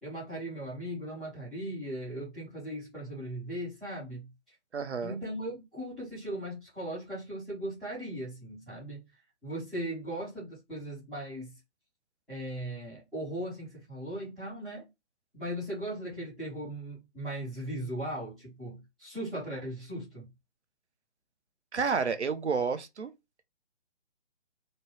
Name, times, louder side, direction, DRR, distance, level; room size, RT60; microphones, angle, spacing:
voice 1, 0.0-4.5 5.0-9.0 9.4-11.5 12.3-14.9 15.3-20.2, right 1 dB, ahead, 0.5 m, -38 dB
voice 2, 4.7-5.2 21.7-23.1, right 5 dB, 80° right, 0.7 m, -30 dB
3.0 x 2.2 x 3.1 m
figure-of-eight pair, 145°, 34 cm